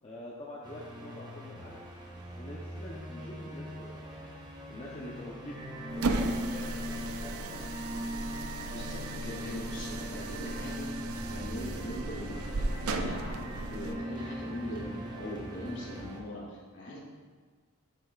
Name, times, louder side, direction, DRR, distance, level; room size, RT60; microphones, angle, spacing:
voice 1, 0.0-1.8 2.1-4.3 4.7-5.6 5.9-7.6, left 1 dB, 25° left, -5 dB, 0.8 m, -45 dB
sound 1, 0.6-16.2, equal, 20° right, 1.0 m, -45 dB
sound 2, 5.5-16.0, equal, 40° right, 2.5 m, -40 dB
sound 3, 5.9-14.0, right 2 dB, 75° right, 0.5 m, -36 dB
voice 2, 8.7-10.9 11.3-17.0, equal, 55° left, -6 dB, 2.5 m, -41 dB
9.9 x 8.2 x 2.4 m, 1.6 s
head